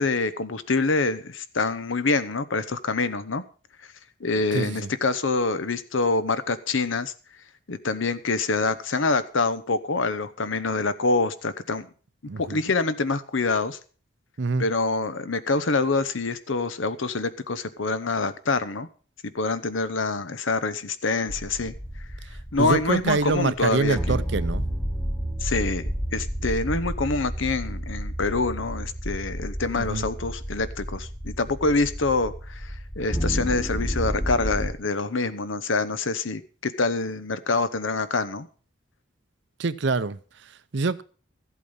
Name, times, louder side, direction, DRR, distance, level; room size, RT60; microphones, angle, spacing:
voice 1, 0.0-3.4 4.2-7.1 7.7-11.9 12.4-13.8 14.6-18.9 19.3-21.7 22.5-24.2 25.4-38.5, left 3 dB, 75° left, 0.9 m, -26 dB
voice 2, 4.5-4.9 12.3-12.6 14.4-14.6 22.6-24.6 29.8-30.1 39.6-41.0, right 3 dB, 60° right, 0.6 m, -26 dB
sound 1, 21.3-34.8, equal, 10° left, 1.3 m, -31 dB
13.5 x 8.4 x 5.5 m
head